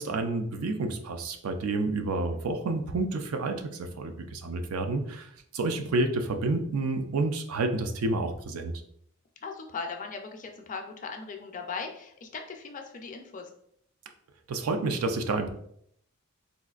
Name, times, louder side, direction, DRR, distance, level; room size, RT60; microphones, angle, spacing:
voice 1, 0.0-8.7 14.5-15.5, right 3 dB, 80° right, 6 dB, 0.4 m, -29 dB
voice 2, 9.4-13.5, left 4 dB, 35° left, 4 dB, 0.4 m, -39 dB
4.0 x 2.4 x 2.3 m, 0.69 s
head